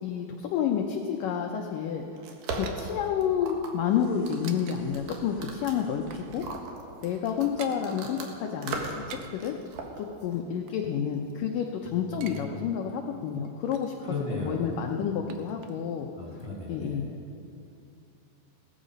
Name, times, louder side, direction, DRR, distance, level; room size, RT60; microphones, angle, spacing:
voice 1, 0.0-2.0 2.5-6.4 7.0-9.5 10.0-16.1 16.7-17.1, left 8 dB, 75° left, 3 dB, 2.0 m, -30 dB
sound 1, 1.8-4.8 5.1-5.3 5.6-6.3 6.6-6.7 7.0-7.8 8.9-9.5 10.2-11.7 12.0-12.5 12.8-12.9 13.2-14.0 14.7-16.0 16.3-16.4, right 7 dB, 85° right, 1.6 m, -49 dB
sound 2, 1.9-8.3 8.6-9.1 9.4-10.4, right 3 dB, 60° right, 2.8 m, -38 dB
sound 3, 3.8-6.8 8.0-8.1, equal, 35° right, 5.9 m, -51 dB
voice 2, 12.0-12.3 14.0-14.7 16.2-17.1, left 2 dB, 20° right, -4 dB, 3.1 m, -35 dB
17.0 x 14.0 x 5.2 m, 2.6 s
omnidirectional pair, 4.6 m